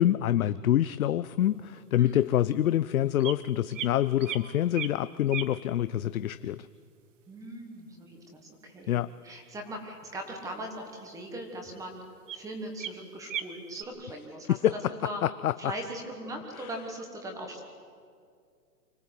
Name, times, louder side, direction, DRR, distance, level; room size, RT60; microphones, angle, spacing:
voice 1, 0.0-6.7 8.9-9.1 14.5-14.7 15.2-15.7 16.6-16.7, left 12 dB, 60° left, 14 dB, 0.6 m, -26 dB
sound 1, 1.8-1.9 3.2-3.4 3.7-3.9 4.2-4.9 5.3-5.5 10.5-10.7 11.0-11.1 11.8-11.9 12.3-12.4 12.8-12.9 13.3-13.9, right 9 dB, 50° right, 1.2 m, -36 dB
voice 2, 7.3-9.0 9.2-12.0 12.3-15.2 15.6-17.6, right 1 dB, 5° right, 3 dB, 1.3 m, -40 dB
24.5 x 15.5 x 8.0 m, 2.3 s
hypercardioid pair, 155°, 48 cm